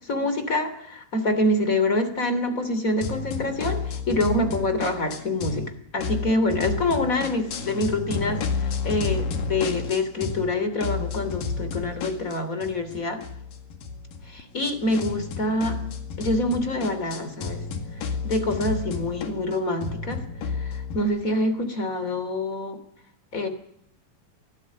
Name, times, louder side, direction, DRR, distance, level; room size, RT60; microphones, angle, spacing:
voice 1, 0.1-8.4 8.8-13.2 14.3-15.8 16.2-17.6 18.2-20.2 20.6-20.7 20.9-22.8 23.3-23.5, left 2 dB, 25° left, 9 dB, 2.9 m, -26 dB
sound 1, 3.0-5.7 6.0-10.5 10.8-21.0, left 4 dB, 80° left, 3.8 m, -31 dB
24.0 x 17.5 x 8.3 m, 0.71 s
omnidirectional pair, 3.8 m